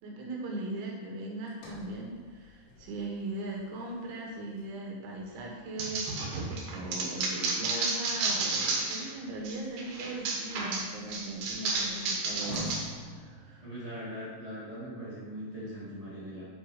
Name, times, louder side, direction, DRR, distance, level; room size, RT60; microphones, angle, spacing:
voice 1, 0.0-12.7 13.0-13.7, right 2 dB, 85° right, -1 dB, 3.8 m, -39 dB
Sliding door, 1.5-5.7 9.2-14.2, left 2 dB, 65° left, 2.9 m, -48 dB
sound 1, 5.8-9.1 9.5-12.8, right 3 dB, 70° right, 2.7 m, -32 dB
voice 2, 13.6-16.5, equal, 15° right, -10 dB, 1.2 m, -40 dB
9.7 x 4.4 x 5.0 m, 1.4 s
omnidirectional pair, 5.2 m